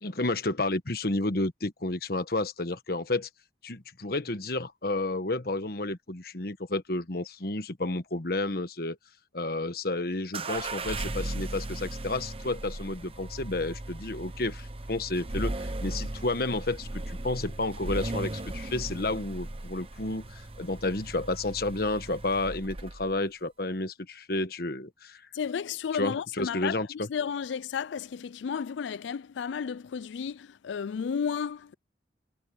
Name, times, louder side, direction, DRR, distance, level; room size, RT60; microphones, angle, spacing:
voice 1, 0.0-3.3 3.6-9.0 9.3-25.2 25.9-27.1, left 2 dB, 55° left, 1.3 m, -31 dB
sound 1, 10.3-23.2, right 2 dB, 30° right, 1.0 m, -37 dB
voice 2, 25.3-26.8 27.1-31.7, left 6 dB, 85° left, 0.4 m, -33 dB
head